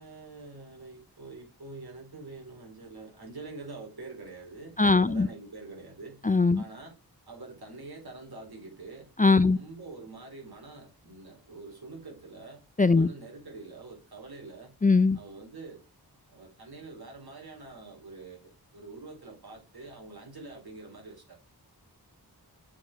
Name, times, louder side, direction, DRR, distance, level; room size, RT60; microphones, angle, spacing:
voice 1, 0.0-6.3 6.5-7.0 7.3-9.1 9.4-12.6 12.9-14.7 15.1-15.8 16.3-21.4, right 3 dB, 70° right, 4.1 m, -45 dB
voice 2, 4.8-5.3 6.2-6.6 9.2-9.6 12.8-13.1 14.8-15.2, left 3 dB, 20° left, 0.5 m, -21 dB
7.2 x 4.9 x 4.9 m
cardioid pair, 40°, 39 cm